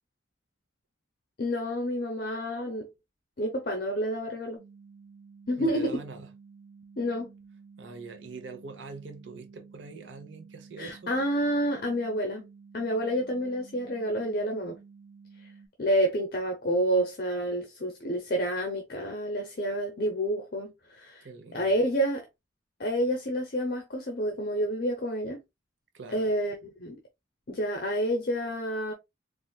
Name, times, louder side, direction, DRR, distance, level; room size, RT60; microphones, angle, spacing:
voice 1, 1.4-2.9 3.4-4.6 5.5-6.0 7.0-7.3 10.8-12.4 12.7-14.8 15.4-15.5 15.8-21.3 21.5-22.3 22.8-25.4 26.1-27.0 27.5-28.9, equal, 50° left, 0.7 m, -29 dB
sound 1, 4.6-15.7, right 5 dB, ahead, 2.1 m, -52 dB
voice 2, 5.6-6.3 7.8-11.1 21.2-21.7 25.9-26.3, right 3 dB, 85° right, 0.8 m, -43 dB
4.1 x 2.5 x 2.3 m
head